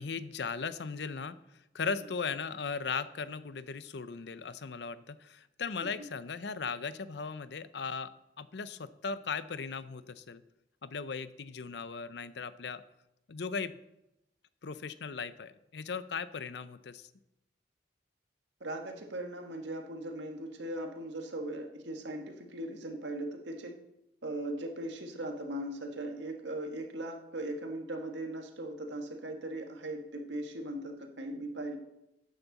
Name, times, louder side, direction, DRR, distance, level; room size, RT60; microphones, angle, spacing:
voice 1, 0.0-1.4 1.7-8.1 8.4-10.4 10.8-12.8 13.3-13.8 14.6-17.1, left 5 dB, 70° left, 14 dB, 0.6 m, -37 dB
voice 2, 18.6-23.8 24.2-31.8, right 1 dB, 90° right, 4 dB, 1.6 m, -39 dB
13.0 x 9.3 x 4.1 m, 0.88 s
head